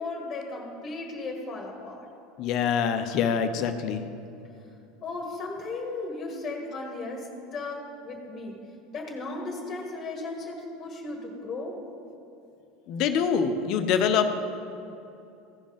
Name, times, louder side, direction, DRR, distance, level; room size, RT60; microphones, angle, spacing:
voice 1, 0.0-2.1 5.0-8.6 8.9-11.8, left 3 dB, 30° left, 0 dB, 1.7 m, -36 dB
voice 2, 2.4-4.0 12.9-14.4, left 7 dB, 55° left, 8 dB, 0.8 m, -25 dB
15.5 x 5.2 x 5.1 m, 2.7 s
hypercardioid pair, 80°, 0 cm